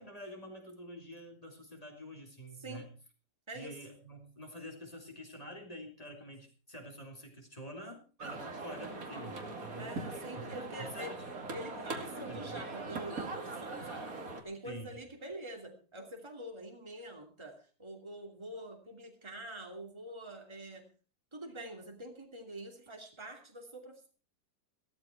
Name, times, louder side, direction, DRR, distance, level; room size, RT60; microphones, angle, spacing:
voice 1, 0.0-2.9 3.5-9.9 10.4-10.5 10.8-11.2 11.9-12.6 14.6-15.0, equal, 20° left, 3 dB, 3.8 m, -47 dB
voice 2, 2.6-2.9 3.5-3.7 9.8-11.2 11.5-14.2 14.4-20.8 21.3-24.1, right 1 dB, 15° right, 2 dB, 2.8 m, -45 dB
sound 1, 8.2-14.4, right 3 dB, 55° right, 2.7 m, -41 dB
16.0 x 13.0 x 4.6 m, 0.37 s
omnidirectional pair, 1.7 m